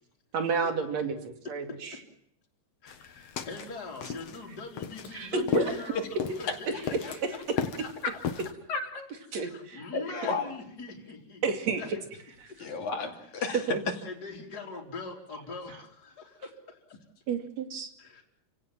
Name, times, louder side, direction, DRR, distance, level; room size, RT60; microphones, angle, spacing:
voice 1, 0.3-1.9 5.1-5.7 9.3-9.8 10.2-10.4 11.4-12.0 12.4-12.5 13.7-13.8 17.3-17.9, right 4 dB, 65° right, 6 dB, 3.6 m, -31 dB
voice 2, 2.8-7.1 7.8-7.9 9.3-11.4 11.7-12.0 14.0-16.8 18.0-18.3, left 4 dB, 30° left, -1 dB, 4.1 m, -42 dB
sound 1, 2.9-8.5, left 7 dB, 60° left, 2.4 m, -36 dB
voice 3, 8.7-9.1 9.9-10.4 12.6-13.9, left 4 dB, 75° left, 2 dB, 4.1 m, -32 dB
29.5 x 17.0 x 7.6 m, 0.74 s
omnidirectional pair, 3.3 m